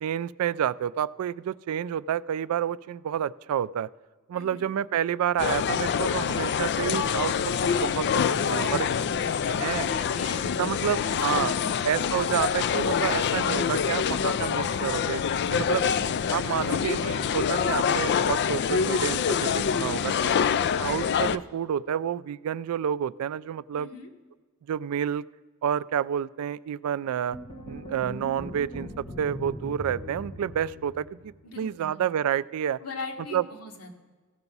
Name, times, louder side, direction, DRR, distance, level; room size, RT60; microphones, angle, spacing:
voice 1, 0.0-3.9 4.3-7.3 7.6-8.9 9.6-9.9 10.6-11.5 11.8-15.2 15.5-15.8 16.3-20.4 20.8-23.9 24.7-25.2 25.6-27.4 27.7-32.8 33.3-33.4, right 9 dB, 75° right, 17 dB, 0.3 m, -29 dB
voice 2, 4.3-4.7 8.8-11.8 15.8-16.1 23.8-24.1 31.4-32.0 32.8-33.9, left 3 dB, 85° left, 3 dB, 1.6 m, -41 dB
sound 1, 5.4-21.4, left 7 dB, 50° left, 0.3 m, -26 dB
sound 2, 27.3-31.6, equal, 25° left, 1.4 m, -40 dB
15.5 x 5.9 x 5.4 m, 1.4 s
head